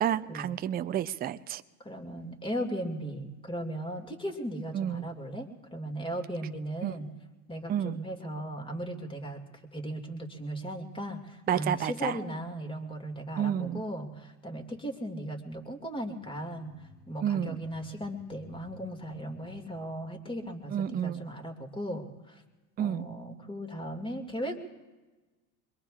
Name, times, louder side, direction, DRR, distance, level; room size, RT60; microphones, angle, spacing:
voice 1, 0.0-1.6 4.7-5.1 6.8-6.9 7.7-8.0 11.5-12.2 13.4-13.8 17.2-17.6 20.7-21.2 22.8-23.1, right 10 dB, 20° right, 12 dB, 0.5 m, -30 dB
voice 2, 1.8-7.1 7.5-22.4 22.8-24.6, right 1 dB, 10° left, 3 dB, 2.3 m, -37 dB
sound 1, 16.0-21.1, left 5 dB, 85° left, 3.2 m, -55 dB
24.5 x 21.5 x 2.5 m, 1.2 s
hypercardioid pair, 85°, 44 cm